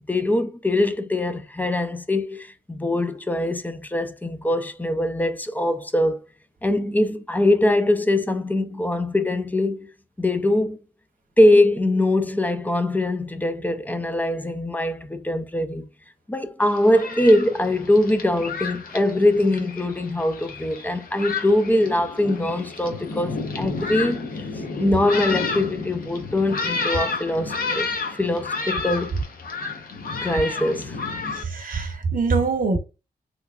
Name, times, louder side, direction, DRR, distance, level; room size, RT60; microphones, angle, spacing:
voice 1, 0.1-6.2 6.6-9.9 10.2-10.8 11.4-15.9 16.3-24.3 24.8-27.9 28.2-29.2 30.2-31.0, left 1 dB, 10° left, 0.4 m, -22 dB
Thunderstorm, 16.6-31.4, left 4 dB, 55° left, 0.8 m, -31 dB
voice 2, 31.5-32.8, right 4 dB, 50° right, 1.0 m, -23 dB
3.3 x 2.9 x 2.4 m
cardioid pair, 90°, 18 cm